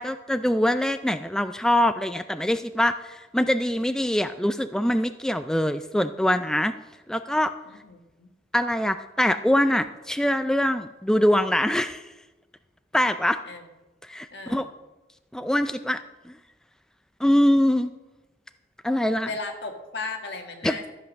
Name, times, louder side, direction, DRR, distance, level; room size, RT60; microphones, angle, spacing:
voice 1, 0.0-6.7 7.1-7.5 8.5-12.1 12.9-13.4 14.1-14.7 15.3-16.0 16.3-16.4 17.2-17.9 18.8-19.3 20.6-20.8, left 1 dB, 5° left, 9 dB, 0.3 m, -23 dB
voice 2, 7.7-8.3 13.4-13.7 14.3-14.7 19.2-20.9, left 4 dB, 65° left, 4 dB, 1.8 m, -36 dB
13.5 x 8.1 x 6.4 m, 1.1 s
head